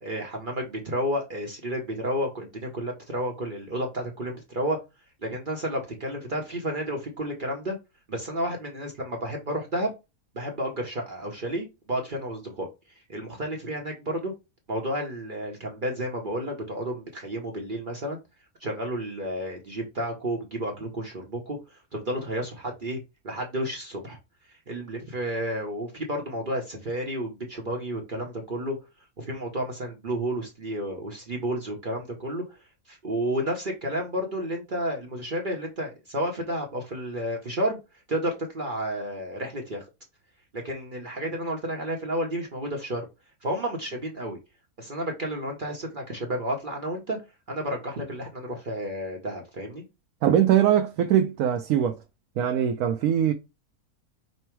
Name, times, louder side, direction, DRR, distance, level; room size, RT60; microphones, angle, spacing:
voice 1, 0.0-4.8 5.2-7.8 8.1-9.9 10.3-12.7 13.1-14.3 14.7-18.2 18.6-24.2 24.5-28.8 29.2-32.6 32.9-37.8 38.1-39.8 40.5-43.0 43.4-44.4 44.8-47.2 47.5-49.8, right 1 dB, 40° right, 0.9 m, -31 dB
voice 2, 50.2-52.0 52.4-53.3, right 10 dB, 75° right, 1.0 m, -22 dB
5.4 x 2.2 x 4.4 m
omnidirectional pair, 1.5 m